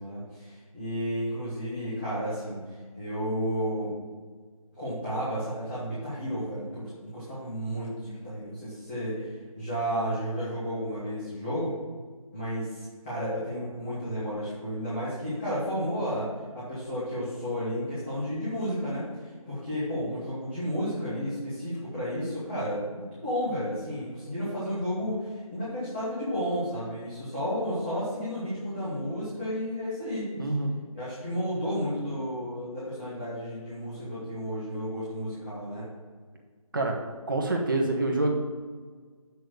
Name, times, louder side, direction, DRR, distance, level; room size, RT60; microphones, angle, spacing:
voice 1, 0.0-2.6 3.0-3.9 4.8-9.3 9.6-11.7 12.3-16.3 16.5-30.3 30.9-35.9, equal, 20° left, -12 dB, 2.5 m, -32 dB
voice 2, 30.4-30.7 36.7-36.9 37.3-38.3, right 2 dB, 35° right, 0 dB, 1.4 m, -26 dB
8.4 x 6.3 x 6.5 m, 1.5 s
figure-of-eight pair, 170°, 18 cm